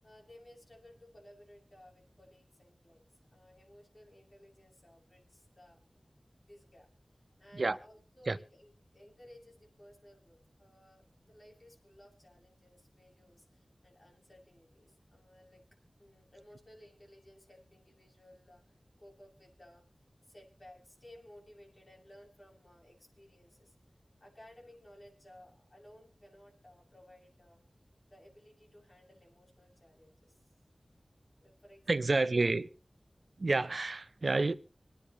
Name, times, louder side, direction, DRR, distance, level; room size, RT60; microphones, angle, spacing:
voice 1, 0.0-3.0 3.3-5.8 6.5-6.9 7.1-15.6 16.0-23.7 24.2-27.6 28.1-30.5 31.4-32.2, left 1 dB, 40° left, 6.9 m, -58 dB
voice 2, 31.9-32.7 33.4-34.5, right 3 dB, 70° right, 0.6 m, -29 dB
26.5 x 10.0 x 3.1 m
wide cardioid pair, 55°, 0 cm